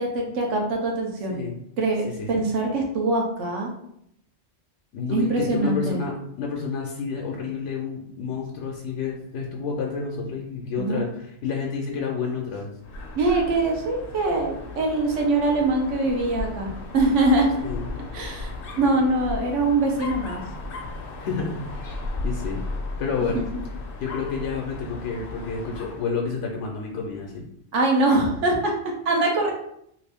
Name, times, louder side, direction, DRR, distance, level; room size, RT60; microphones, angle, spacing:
voice 1, 0.0-1.5 1.8-3.7 5.1-6.1 10.8-11.0 13.2-17.5 18.1-20.4 23.3-23.4 27.7-28.7 29.0-29.5, right 2 dB, 90° right, 1 dB, 1.1 m, -23 dB
voice 2, 4.9-12.7 17.6-17.8 21.2-21.9 22.2-22.6 23.0-23.4 24.0-27.5, left 5 dB, 85° left, -1 dB, 0.9 m, -29 dB
Dog, 12.8-26.1, left 3 dB, 60° left, 0.7 m, -35 dB
3.0 x 2.5 x 3.4 m, 0.73 s
omnidirectional pair, 1.2 m